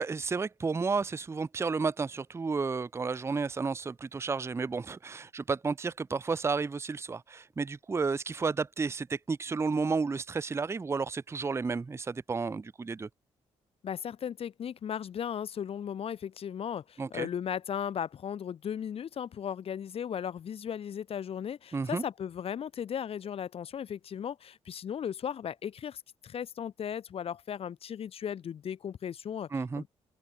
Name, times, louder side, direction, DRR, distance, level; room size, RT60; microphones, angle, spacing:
voice 1, 0.0-13.1 17.0-17.3 21.7-22.0 29.5-29.8, right 4 dB, 20° right, 0.4 m, -32 dB
voice 2, 13.8-29.5 29.8-29.9, left 8 dB, 45° left, 0.5 m, -36 dB
open air
supercardioid pair, 55°, 13 cm